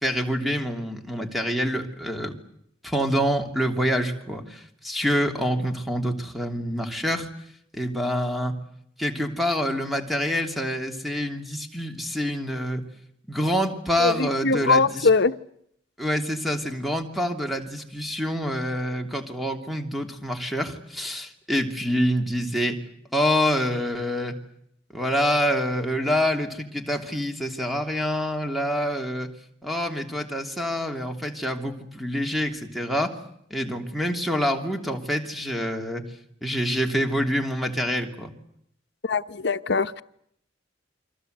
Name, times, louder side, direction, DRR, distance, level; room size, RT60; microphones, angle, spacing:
voice 1, 0.0-2.4 2.8-7.3 7.7-8.5 9.0-12.8 13.3-15.1 16.0-22.8 23.1-24.4 24.9-29.3 29.6-33.2 33.5-36.0 36.4-38.3, equal, ahead, 4 dB, 3.1 m, -26 dB
voice 2, 14.0-15.3 39.0-40.0, left 4 dB, 65° left, 11 dB, 1.0 m, -22 dB
29.0 x 24.0 x 8.1 m, 0.73 s
head